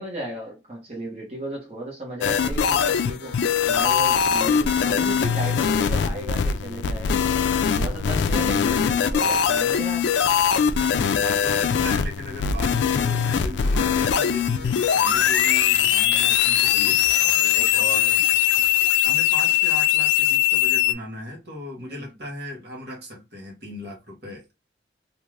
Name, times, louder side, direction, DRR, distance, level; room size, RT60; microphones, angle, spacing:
voice 1, 0.0-3.4 3.7-7.2 7.7-10.1 16.1-16.4 17.4-18.1 21.8-22.0, right 1 dB, 35° right, 1.1 m, -35 dB
sound 1, 2.2-20.9, left 9 dB, 80° left, 0.3 m, -21 dB
voice 2, 8.2-8.8 11.0-17.0 17.7-18.2 19.0-24.5, left 1 dB, 65° right, 1.0 m, -37 dB
2.5 x 2.4 x 3.1 m
head